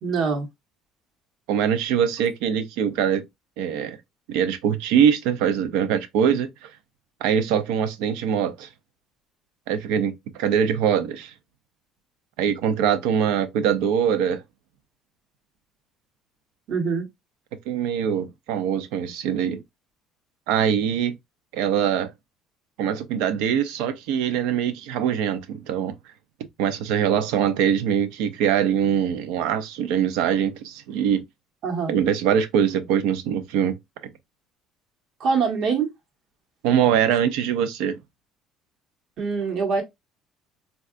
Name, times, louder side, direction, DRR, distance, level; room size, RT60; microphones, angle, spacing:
voice 1, 0.0-0.5 16.7-17.0 31.6-31.9 35.2-35.9 39.2-39.8, right 5 dB, 55° right, 1.0 m, -24 dB
voice 2, 1.5-3.2 3.6-4.0 4.3-6.7 7.2-8.7 9.7-10.1 10.4-11.3 12.4-14.4 17.7-19.6 20.5-21.2 21.5-22.1 22.8-25.9 26.6-31.2 31.9-33.8 36.6-38.0, right 8 dB, 90° right, 0.5 m, -23 dB
3.6 x 2.3 x 2.4 m
cardioid pair, 135°, 0 cm